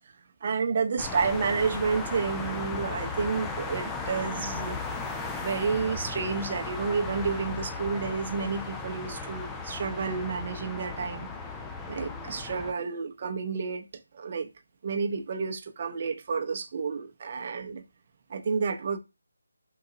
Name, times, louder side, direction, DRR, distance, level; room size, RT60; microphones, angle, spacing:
voice 1, 0.4-4.8 5.4-11.3 11.9-13.9 14.1-14.5 14.8-17.8 18.3-19.0, right 5 dB, 35° right, 0.6 m, -30 dB
sound 1, 1.0-12.7, left 4 dB, 5° left, 0.3 m, -36 dB
3.8 x 2.8 x 2.5 m
figure-of-eight pair, 160°, 0 cm